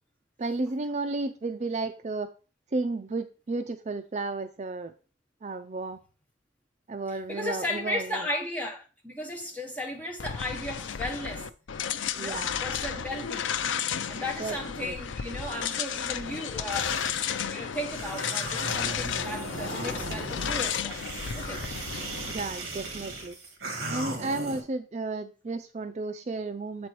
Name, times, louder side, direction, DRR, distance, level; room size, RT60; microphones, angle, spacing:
voice 1, 0.4-2.3 2.7-4.9 5.4-6.0 6.9-8.3 12.2-12.6 14.4-14.6 14.8-15.0 22.3-23.4 23.9-26.9, right 3 dB, 35° right, 0.4 m, -33 dB
voice 2, 7.1-11.5 12.1-13.6 14.1-17.0 17.5-21.0 21.2-21.7, left 1 dB, 10° left, 1.2 m, -35 dB
sound 1, 10.2-22.4, left 8 dB, 70° left, 0.4 m, -33 dB
sound 2, 16.7-17.3 17.9-24.6, right 2 dB, 50° right, 2.1 m, -37 dB
7.7 x 4.4 x 4.6 m
head